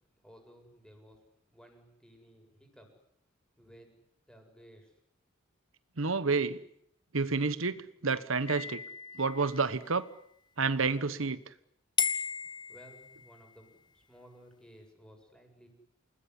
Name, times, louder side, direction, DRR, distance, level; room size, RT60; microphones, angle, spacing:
voice 1, 0.2-1.2 1.5-2.9 3.6-4.9 12.7-15.7, equal, 5° left, 3 dB, 7.9 m, -56 dB
voice 2, 6.0-6.6 7.1-8.8 9.2-10.0 10.6-11.4, right 4 dB, 85° right, 14 dB, 1.2 m, -29 dB
sound 1, 8.5-10.0 12.0-13.6, left 6 dB, 25° left, 1.5 m, -35 dB
29.5 x 20.0 x 9.9 m, 0.74 s
head